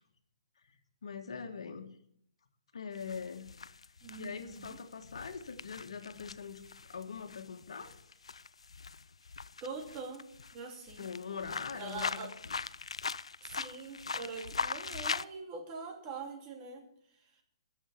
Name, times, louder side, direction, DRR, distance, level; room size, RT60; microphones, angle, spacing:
voice 1, 1.0-1.9 2.7-3.5 4.2-6.6 6.9-8.0 11.0-12.5, left 6 dB, 75° left, 7 dB, 1.6 m, -42 dB
sound 1, 2.9-15.2, left 5 dB, 90° left, 0.4 m, -41 dB
voice 2, 4.0-4.8 9.6-10.3 10.5-11.1 11.7-12.4 13.4-16.8, right 4 dB, 30° right, 2 dB, 2.8 m, -43 dB
11.0 x 7.3 x 9.6 m, 0.69 s
hypercardioid pair, 145°, 3 cm